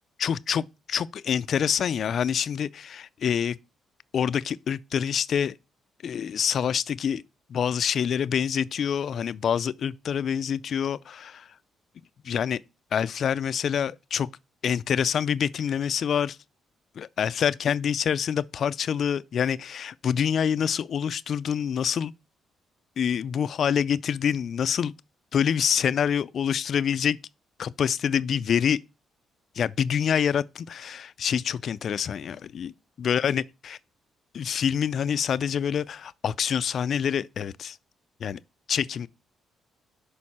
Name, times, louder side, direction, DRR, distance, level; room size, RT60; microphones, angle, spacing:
voice 1, 0.2-3.6 4.1-5.6 6.0-7.2 7.5-11.5 12.2-12.6 12.9-14.3 14.6-16.4 17.0-22.1 23.0-24.9 25.3-27.2 27.6-28.8 29.6-32.7 33.0-33.8 34.3-37.8 38.2-38.4 38.7-39.1, left 8 dB, 60° left, 0.4 m, -26 dB
6.5 x 5.2 x 4.2 m
cardioid pair, 90°, 0 cm